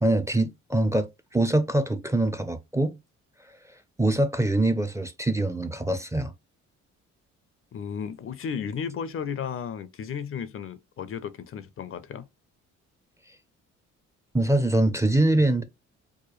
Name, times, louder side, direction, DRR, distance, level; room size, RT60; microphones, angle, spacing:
voice 1, 0.0-2.9 4.0-6.3 14.3-15.6, right 1 dB, 10° right, 0.5 m, -24 dB
voice 2, 7.7-12.3, left 7 dB, 45° left, 0.5 m, -34 dB
4.7 x 2.2 x 3.0 m
cardioid pair, 90°, 30 cm